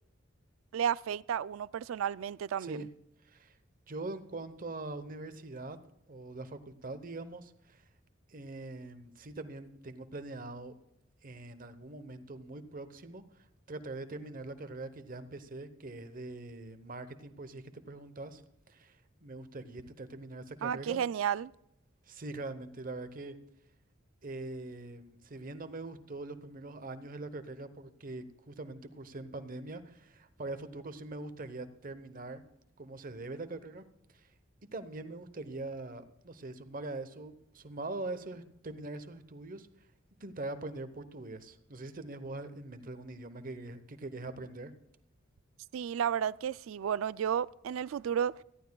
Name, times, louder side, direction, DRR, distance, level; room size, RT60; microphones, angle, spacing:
voice 1, 0.7-2.9 20.6-21.5 45.7-48.4, right 8 dB, 80° right, 0.3 m, -32 dB
voice 2, 3.2-3.6 3.9-5.8 6.1-7.8 8.3-10.7 11.2-13.2 13.7-18.4 18.7-21.0 22.1-23.4 24.2-32.4 32.8-33.9 34.1-34.3 34.7-39.7 40.2-44.7, right 2 dB, 45° right, 0.9 m, -43 dB
19.0 x 14.0 x 2.3 m
head